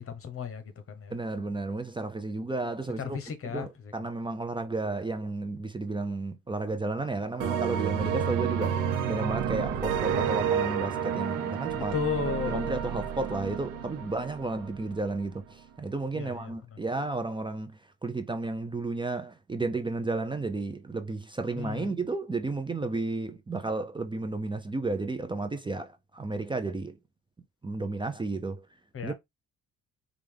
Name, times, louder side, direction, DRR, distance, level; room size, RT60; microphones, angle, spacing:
voice 1, 0.0-1.2 3.0-3.9 11.9-12.8 16.1-16.5 21.6-21.9 28.9-29.1, left 5 dB, 45° left, 1.1 m, -34 dB
voice 2, 1.1-3.2 3.4-12.0 12.5-27.0 27.6-28.6 29.0-29.1, right 3 dB, 15° right, 0.6 m, -32 dB
sound 1, 7.4-15.0, right 8 dB, 90° right, 0.8 m, -30 dB
5.4 x 2.4 x 3.4 m
cardioid pair, 90°, 30 cm